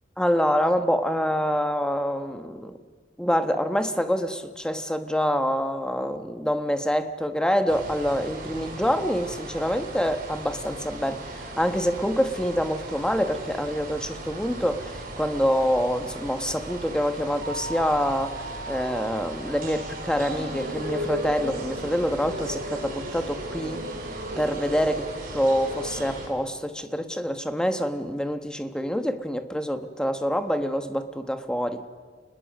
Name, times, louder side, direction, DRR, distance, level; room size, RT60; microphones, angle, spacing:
voice 1, 0.2-2.8 3.2-23.9 24.4-25.1 25.3-31.9, equal, 5° left, 8 dB, 1.2 m, -26 dB
sound 1, 7.7-26.3, right 1 dB, 50° right, 4.6 m, -36 dB
29.0 x 20.5 x 6.5 m, 1.5 s
head